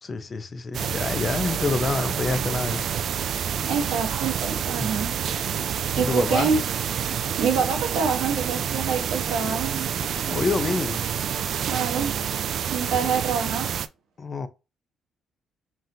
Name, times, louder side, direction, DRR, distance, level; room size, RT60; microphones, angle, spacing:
voice 1, 0.0-2.8 4.8-4.9 5.9-6.5 10.3-11.0 13.0-13.1 14.2-14.5, left 4 dB, 35° left, 0.6 m, -27 dB
sound 1, 0.7-13.9, right 8 dB, 65° right, 0.3 m, -28 dB
voice 2, 3.7-5.1 5.9-6.6 7.4-9.7 11.7-12.2 12.7-13.7, right 6 dB, 90° right, 1.2 m, -26 dB
5.9 x 2.5 x 2.8 m
cardioid pair, 90°, 0 cm